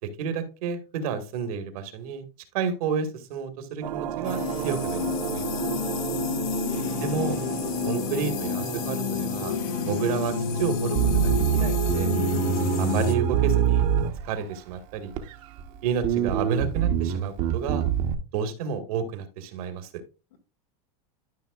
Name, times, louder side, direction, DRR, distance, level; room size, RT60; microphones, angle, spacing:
voice 1, 0.0-2.3 2.5-5.5 7.0-7.4 7.8-9.6 9.9-12.1 12.8-13.9 14.2-15.1 15.8-17.8 18.3-20.0, right 6 dB, 65° right, 8 dB, 1.8 m, -30 dB
sound 1, 3.8-14.1, right 12 dB, 85° right, 0.9 m, -34 dB
sound 2, 4.2-13.2, left 8 dB, 65° left, 1.3 m, -29 dB
voice 2, 5.6-6.5 12.3-12.9 20.3-20.4, left 7 dB, 90° left, 5 dB, 2.1 m, -43 dB
Bass guitar, 10.9-14.5 15.1-15.7 16.0-18.1, right 9 dB, 45° right, 1.1 m, -24 dB
12.5 x 5.6 x 2.4 m, 0.30 s
supercardioid pair, 150°, 20 cm